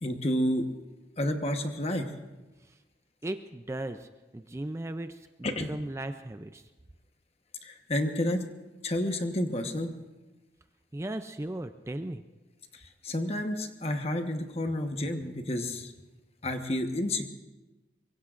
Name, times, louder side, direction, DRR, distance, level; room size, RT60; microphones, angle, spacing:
voice 1, 0.0-0.7 1.2-2.1 5.4-5.7 7.6-8.5 8.8-9.9 12.7-15.9 16.4-17.3, left 1 dB, 35° left, 6 dB, 1.1 m, -30 dB
voice 2, 3.2-6.7 10.9-12.2, right 1 dB, 15° right, 9 dB, 0.4 m, -37 dB
24.0 x 23.0 x 2.5 m, 1.2 s
head